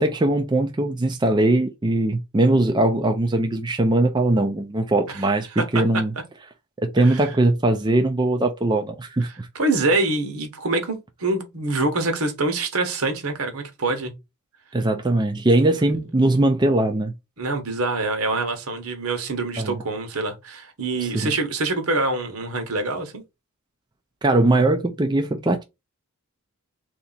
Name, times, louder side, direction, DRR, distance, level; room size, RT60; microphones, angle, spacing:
voice 1, 0.0-6.1 6.8-9.5 14.7-17.1 19.6-19.8 21.0-21.3 24.2-25.6, right 2 dB, 20° right, 0.4 m, -20 dB
voice 2, 5.6-6.0 7.0-7.3 9.5-14.1 17.4-23.2, right 2 dB, 80° right, 1.3 m, -25 dB
3.4 x 2.8 x 4.0 m
head